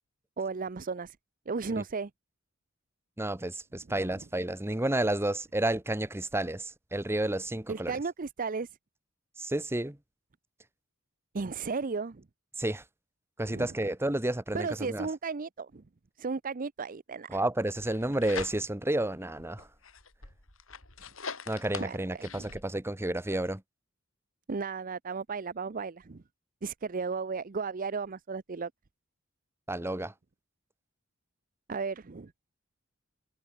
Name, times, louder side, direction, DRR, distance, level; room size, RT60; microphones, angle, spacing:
voice 1, 0.4-1.2 1.5-2.1 7.7-8.7 11.3-12.2 13.5-13.7 14.5-15.8 16.2-17.4 21.8-22.5 24.5-26.2 26.6-28.7 31.7-32.3, right 4 dB, 40° right, 0.6 m, -34 dB
voice 2, 3.2-8.0 9.4-10.0 12.6-12.8 13.4-15.1 17.3-19.7 21.5-23.6 29.7-30.1, right 1 dB, 10° right, 1.1 m, -31 dB
sound 1, 17.7-18.9 19.4-22.6, left 5 dB, 70° left, 7.7 m, -42 dB
head